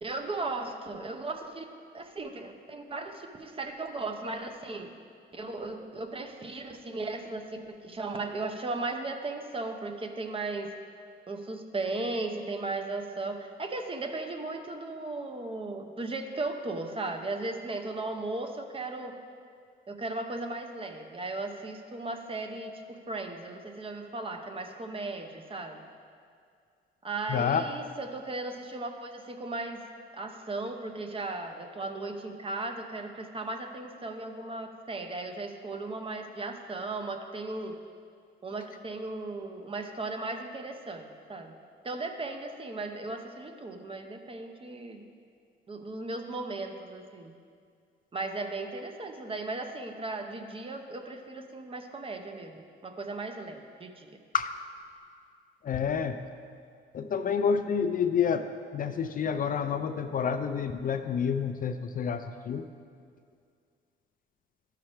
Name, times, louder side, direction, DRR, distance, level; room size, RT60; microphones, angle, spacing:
voice 1, 0.0-1.7 1.9-4.9 5.3-10.7 11.3-19.1 19.9-25.8 27.0-29.8 30.1-37.8 38.4-41.6 41.8-45.0 45.7-47.3 48.1-54.2, right 2 dB, 25° right, 5 dB, 0.7 m, -36 dB
voice 2, 27.3-27.6 54.3-54.5 55.6-56.2 56.9-58.5 58.7-62.7, left 7 dB, 45° left, 8 dB, 0.4 m, -28 dB
12.0 x 5.7 x 3.2 m, 2.3 s
cardioid pair, 90°, 20 cm